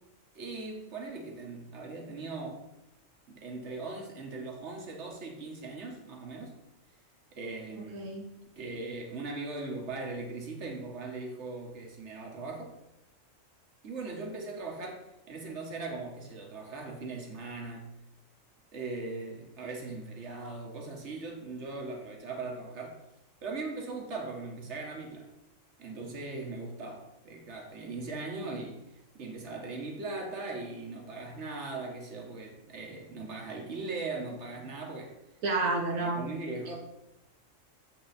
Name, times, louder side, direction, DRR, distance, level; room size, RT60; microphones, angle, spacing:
voice 1, 0.3-2.6 3.3-6.6 7.3-8.1 8.6-12.8 13.8-17.9 18.7-23.0 23.4-25.3 25.8-28.8 29.1-35.2 35.9-36.8, right 3 dB, 60° right, 1 dB, 1.8 m, -39 dB
voice 2, 7.9-8.2 35.4-36.2, right 3 dB, 85° right, 0 dB, 1.4 m, -29 dB
7.5 x 6.1 x 4.3 m, 0.89 s
omnidirectional pair, 1.4 m